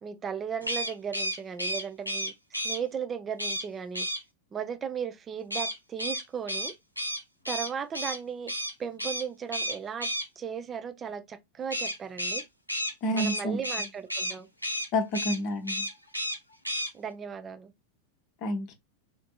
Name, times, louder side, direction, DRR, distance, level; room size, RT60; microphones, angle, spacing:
voice 1, 0.0-4.1 4.5-6.7 7.5-8.5 8.8-10.1 10.4-12.4 13.1-14.5 16.9-17.7, right 7 dB, 20° right, 0.4 m, -36 dB
sound 1, 0.6-2.8 3.4-3.7 3.9-4.2 5.5-8.2 8.5-8.7 9.0-9.2 9.5-10.3 11.7-14.4 14.6-14.9 15.1-15.4 15.7-16.4 16.6-16.9, equal, 90° left, 0.6 m, -32 dB
voice 2, 13.0-13.6 14.9-15.9 18.4-18.7, left 1 dB, 40° left, 0.7 m, -29 dB
3.6 x 2.6 x 2.3 m
figure-of-eight pair, 90°, 0 cm